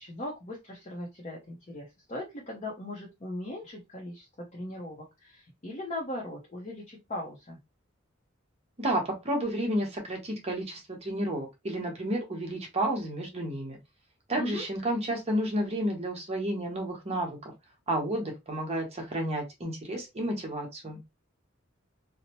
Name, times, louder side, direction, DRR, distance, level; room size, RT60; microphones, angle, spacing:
voice 1, 0.0-7.6 14.4-14.6, left 1 dB, 35° left, 0.6 m, -39 dB
voice 2, 8.8-13.8 14.3-17.4 17.9-21.0, right 1 dB, 30° right, 0.9 m, -31 dB
2.7 x 2.0 x 2.9 m
head